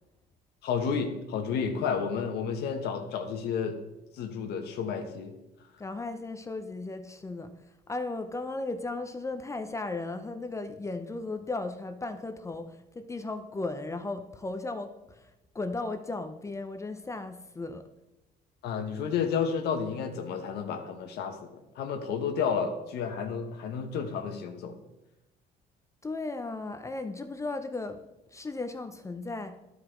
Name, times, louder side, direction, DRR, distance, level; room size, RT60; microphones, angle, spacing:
voice 1, 0.6-3.8 4.1-5.3 18.6-21.5 21.8-24.8, left 6 dB, 75° left, 5 dB, 0.9 m, -31 dB
voice 2, 5.8-7.5 7.9-17.8 26.0-28.0 28.3-29.6, left 3 dB, 15° left, 7 dB, 0.6 m, -36 dB
11.5 x 4.8 x 3.8 m, 0.95 s
cardioid pair, 110°, 17 cm